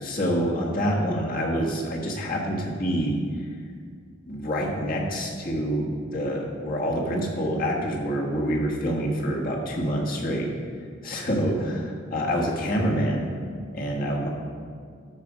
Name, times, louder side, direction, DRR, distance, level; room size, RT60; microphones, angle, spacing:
voice 1, 0.0-3.2 4.3-10.5 11.0-13.3 13.7-14.3, equal, 45° left, -2 dB, 1.5 m, -26 dB
12.5 x 4.9 x 5.1 m, 2.1 s
head